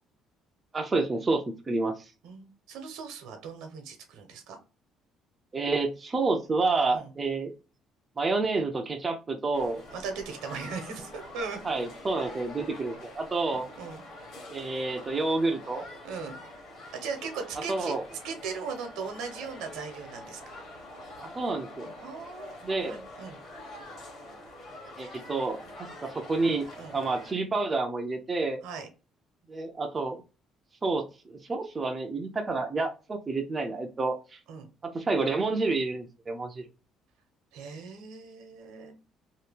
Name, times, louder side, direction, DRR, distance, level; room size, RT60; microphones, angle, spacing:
voice 1, 0.7-2.1 5.5-7.5 8.2-9.8 11.6-13.7 14.5-15.8 17.7-18.0 21.2-21.9 22.6-23.0 25.0-28.6 29.5-30.2 30.8-34.4 34.8-36.6, right 3 dB, 15° right, 3 dB, 0.4 m, -29 dB
voice 2, 2.2-4.6 6.9-7.1 9.9-11.6 13.8-14.0 16.0-16.4 16.9-17.9 18.2-20.6 22.0-22.6 22.9-23.4 26.8-27.0 28.6-28.9 34.5-34.7 37.5-38.9, right 5 dB, 80° right, 5 dB, 0.9 m, -38 dB
sound 1, 9.5-27.3, left 1 dB, 40° left, 1.1 m, -45 dB
2.7 x 2.3 x 3.4 m, 0.31 s
cardioid pair, 180°, 0 cm